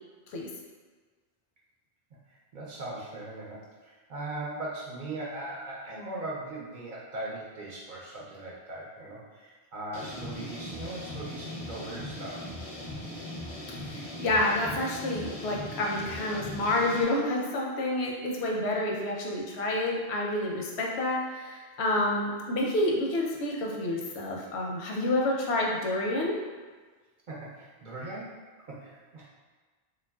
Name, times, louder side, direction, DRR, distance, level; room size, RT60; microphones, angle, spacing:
voice 1, 2.3-12.4 27.3-29.3, right 2 dB, 55° right, -5 dB, 0.6 m, -39 dB
sound 1, 9.9-17.0, left 1 dB, 35° left, 0.5 m, -39 dB
voice 2, 13.8-26.4, left 1 dB, 85° left, -1 dB, 0.8 m, -29 dB
3.0 x 2.4 x 2.2 m, 1.4 s
omnidirectional pair, 1.1 m